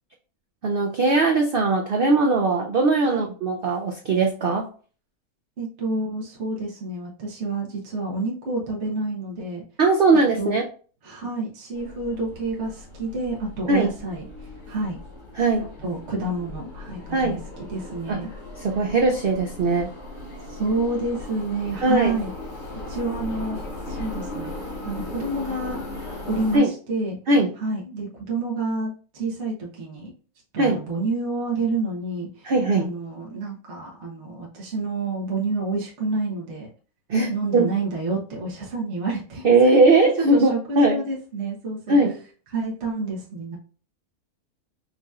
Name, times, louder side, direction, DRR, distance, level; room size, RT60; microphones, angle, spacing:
voice 1, 0.6-4.7 9.8-10.6 13.7-13.9 15.4-15.7 17.1-17.4 18.1-18.2 18.6-19.9 21.8-22.2 26.5-26.7 27.3-27.5 30.6-30.8 32.4-32.9 37.1-37.7 39.4-41.0 41.9-42.1, right 3 dB, 75° right, 1 dB, 0.5 m, -20 dB
voice 2, 5.6-9.6 10.4-10.6 11.0-14.3 14.7-15.0 15.6-18.3 20.5-22.3 22.9-24.5 24.8-25.8 26.3-27.2 27.6-30.1 30.5-36.7 37.3-42.0 42.5-43.6, right 3 dB, 50° right, -3 dB, 1.3 m, -29 dB
sound 1, 11.7-26.6, left 2 dB, 45° left, 2.2 m, -37 dB
5.3 x 2.9 x 2.4 m, 0.40 s
omnidirectional pair, 1.6 m